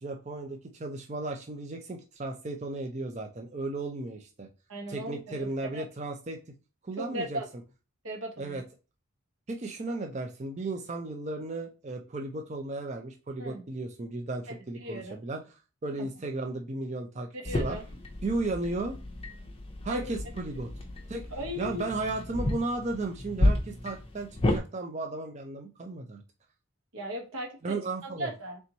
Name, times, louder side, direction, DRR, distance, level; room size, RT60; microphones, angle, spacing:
voice 1, 0.0-4.5 4.9-6.4 6.8-7.4 8.4-8.6 9.5-15.4 15.8-17.3 17.6-17.8 18.2-19.0 19.8-20.7 21.1-21.3 21.6-26.2 27.6-28.3, right 2 dB, 35° right, 3 dB, 0.5 m, -35 dB
voice 2, 4.7-5.8 7.0-7.5 8.0-8.6 13.4-13.6 14.5-15.2 16.0-16.1 17.3-17.8 19.9-20.0 21.3-21.8 26.9-28.6, equal, 90° right, 2 dB, 1.4 m, -37 dB
sound 1, 17.5-24.6, left 1 dB, 25° left, 0.6 m, -32 dB
3.4 x 2.9 x 3.9 m, 0.31 s
head